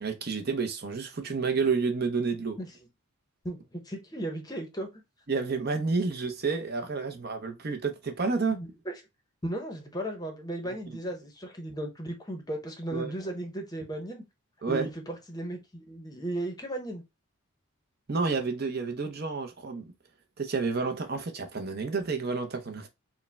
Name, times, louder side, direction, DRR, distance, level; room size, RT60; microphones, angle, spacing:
voice 1, 0.0-2.6 5.3-8.6 12.9-13.1 14.6-14.9 18.1-19.8 20.4-22.9, right 4 dB, 45° right, 0.6 m, -30 dB
voice 2, 3.4-4.9 8.5-9.0 9.4-14.2 14.7-17.0, right 1 dB, 15° left, 0.7 m, -36 dB
4.8 x 2.1 x 3.3 m
head